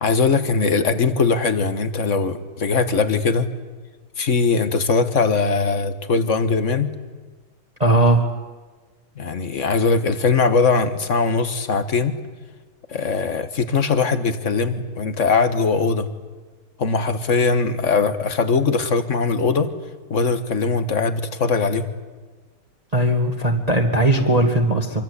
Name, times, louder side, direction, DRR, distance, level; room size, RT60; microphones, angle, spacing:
voice 1, 0.0-3.5 4.2-6.9 9.2-12.2 12.9-16.1 16.8-19.7 20.1-21.9, left 4 dB, 40° left, 10 dB, 1.6 m, -20 dB
voice 2, 7.8-8.3 22.9-25.0, right 1 dB, 20° right, 3 dB, 1.9 m, -18 dB
26.0 x 24.5 x 8.3 m, 1.4 s
omnidirectional pair, 2.3 m